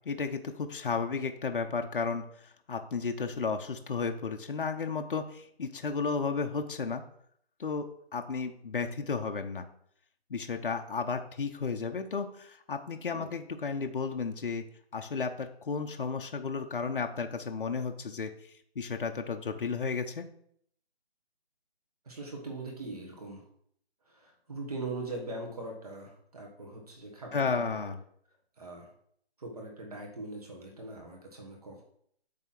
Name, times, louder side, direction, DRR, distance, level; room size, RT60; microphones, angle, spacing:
voice 1, 0.1-7.0 7.6-9.7 10.3-20.3 27.3-28.0, left 5 dB, 55° left, 6 dB, 0.7 m, -33 dB
voice 2, 22.0-23.4 24.0-28.0 28.6-28.9 29.4-31.8, right 2 dB, 35° right, 0 dB, 1.5 m, -41 dB
8.6 x 3.4 x 6.0 m, 0.66 s
figure-of-eight pair, 170°, 32 cm